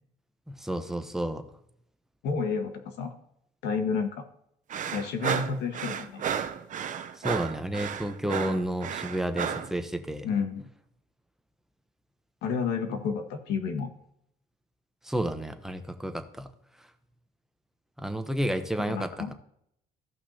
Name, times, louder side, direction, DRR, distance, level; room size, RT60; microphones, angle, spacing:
voice 1, 0.5-1.4 7.2-10.3 15.0-16.5 18.0-19.3, right 1 dB, 5° right, 7 dB, 0.9 m, -31 dB
voice 2, 2.2-3.1 3.6-4.2 4.9-6.3 10.2-10.7 12.4-13.9 18.9-19.3, left 5 dB, 80° left, 5 dB, 1.5 m, -30 dB
sound 1, 4.7-9.7, right 8 dB, 50° right, 0.8 m, -33 dB
16.0 x 5.8 x 2.8 m, 0.72 s
cardioid pair, 110°, 17 cm